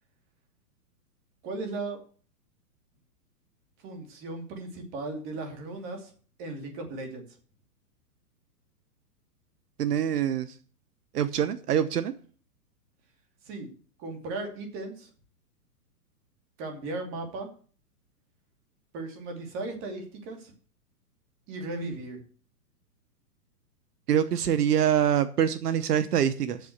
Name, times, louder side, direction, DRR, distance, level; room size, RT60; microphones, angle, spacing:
voice 1, 1.4-2.0 3.8-6.1 6.4-7.2 13.4-13.7 14.0-15.1 16.6-17.5 18.9-20.5 21.5-22.2, right 2 dB, 25° right, 4 dB, 2.7 m, -36 dB
voice 2, 9.8-10.5 11.1-12.1 24.1-26.6, right 9 dB, 80° right, 12 dB, 1.1 m, -25 dB
8.4 x 6.9 x 8.1 m, 0.42 s
hypercardioid pair, 160°, 47 cm